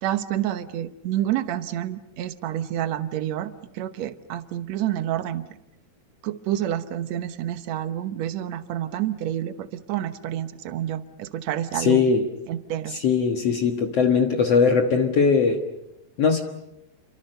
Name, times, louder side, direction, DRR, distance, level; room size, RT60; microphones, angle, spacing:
voice 1, 0.0-5.5 6.2-12.1 12.5-13.0, right 12 dB, 65° right, 11 dB, 2.1 m, -28 dB
voice 2, 11.7-12.2 13.0-15.6 16.2-16.4, left 5 dB, 55° left, 4 dB, 2.2 m, -20 dB
29.5 x 24.5 x 6.7 m, 0.87 s
omnidirectional pair, 3.9 m